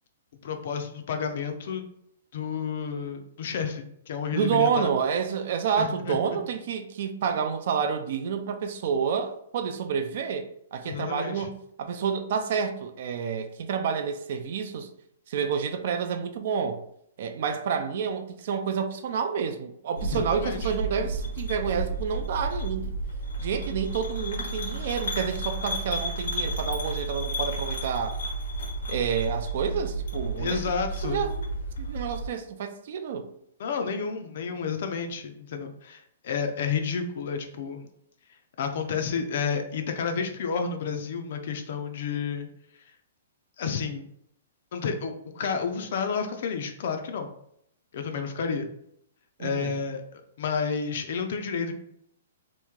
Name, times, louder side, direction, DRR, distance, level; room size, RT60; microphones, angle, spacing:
voice 1, 0.4-1.9 2.3-4.9 5.8-6.4 10.8-11.5 20.1-20.7 30.4-31.3 33.6-37.9 38.6-42.5 43.6-44.0 44.7-47.3 47.9-48.7 49.4-51.7, left 6 dB, 45° left, 0.4 m, -31 dB
voice 2, 4.3-14.9 15.3-16.8 17.2-22.9 23.4-28.2 28.9-30.6 31.0-31.4 31.8-33.3 49.4-49.8, right 7 dB, 45° right, 0.3 m, -29 dB
sound 1, 20.0-32.3, right 2 dB, 90° left, 1.1 m, -32 dB
3.0 x 2.6 x 3.5 m
hypercardioid pair, 175°, 0 cm